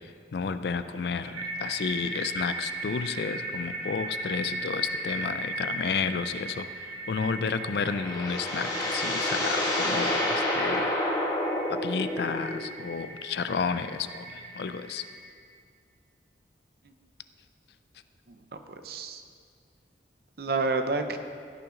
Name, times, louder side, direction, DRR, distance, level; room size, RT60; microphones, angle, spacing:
voice 1, 0.3-6.7 7.1-10.9 11.8-15.0, left 5 dB, 65° left, 11 dB, 0.4 m, -31 dB
sound 1, 0.9-15.2, right 1 dB, 30° right, 1.8 m, -37 dB
sound 2, 7.5-12.6, left 1 dB, 20° left, 1.3 m, -29 dB
voice 2, 18.3-19.2 20.4-21.2, right 3 dB, 55° right, 7 dB, 0.6 m, -30 dB
16.0 x 5.9 x 3.8 m, 2.1 s
head